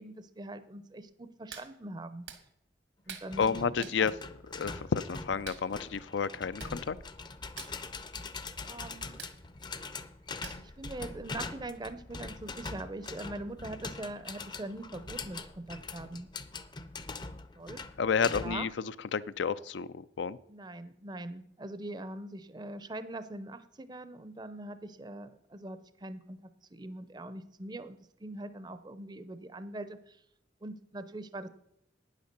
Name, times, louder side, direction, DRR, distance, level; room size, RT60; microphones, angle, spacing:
voice 1, 0.0-2.3 3.1-4.1 8.6-9.2 10.6-16.3 17.5-17.8 18.4-18.7 20.5-26.4 26.7-30.2 30.6-31.5, right 2 dB, 25° right, 12 dB, 0.5 m, -42 dB
Hands, 1.5-1.7 2.3-2.4 3.1-3.3 3.8-4.0 5.4-5.7 6.3-6.4 6.6-6.8 7.0-7.2 7.5-7.7 9.2-9.4 10.4-10.8 11.2-11.3, right 7 dB, 85° right, 1.5 m, -45 dB
sound 1, 3.3-18.7, left 3 dB, 25° left, 0.5 m, -43 dB
voice 2, 3.4-4.1 4.6-7.0 18.0-18.7 19.1-20.4, left 6 dB, 80° left, 16 dB, 0.5 m, -30 dB
9.4 x 8.3 x 6.6 m, 0.78 s
head